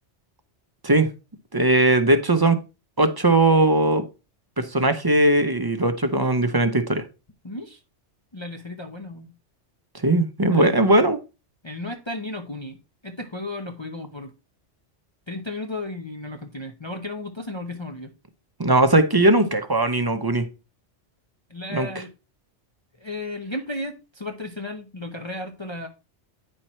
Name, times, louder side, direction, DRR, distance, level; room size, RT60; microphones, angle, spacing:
voice 1, 1.5-2.6 3.0-4.0 4.6-7.0 9.9-11.2 18.6-20.4 21.7-21.9, right 2 dB, 25° right, 0.7 m, -19 dB
voice 2, 7.4-7.8 8.3-9.3 10.5-10.7 11.6-12.8 13.0-14.3 15.3-18.1 21.5-22.1 23.0-25.9, left 2 dB, 30° left, 0.7 m, -34 dB
9.5 x 4.5 x 4.3 m
omnidirectional pair, 1.2 m